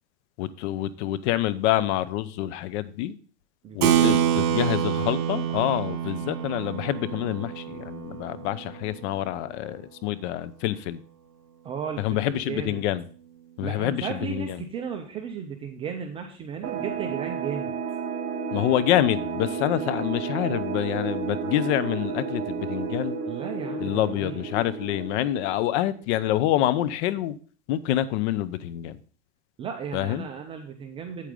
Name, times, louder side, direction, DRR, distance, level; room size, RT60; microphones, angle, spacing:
voice 1, 0.4-3.1 3.7-11.0 12.0-13.0 13.6-14.6 18.5-23.2 23.8-27.4 27.7-29.0 29.9-30.3, left 13 dB, 50° left, 0.8 m, -27 dB
voice 2, 3.6-4.5 11.6-12.8 13.6-17.7 23.3-24.5 29.6-31.3, right 7 dB, 15° right, 0.3 m, -35 dB
Keyboard (musical), 3.8-9.8, right 10 dB, 65° right, 1.9 m, -27 dB
sound 1, 16.6-26.0, right 5 dB, 40° right, 3.2 m, -32 dB
8.4 x 8.3 x 3.7 m
supercardioid pair, 140°, 45 cm